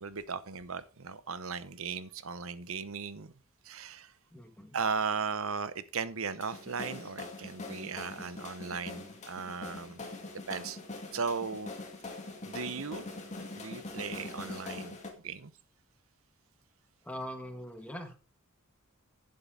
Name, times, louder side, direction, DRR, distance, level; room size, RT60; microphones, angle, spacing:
voice 1, 0.0-3.3 3.6-4.1 4.7-10.0 10.5-10.8 11.1-11.7 12.4-13.1 13.6-14.9 15.2-15.5, right 5 dB, 65° right, 0.8 m, -37 dB
voice 2, 4.3-4.8 17.0-18.2, equal, 5° left, 1.5 m, -42 dB
sound 1, 6.4-15.1, left 2 dB, 35° left, 2.3 m, -43 dB
11.0 x 7.8 x 3.8 m
head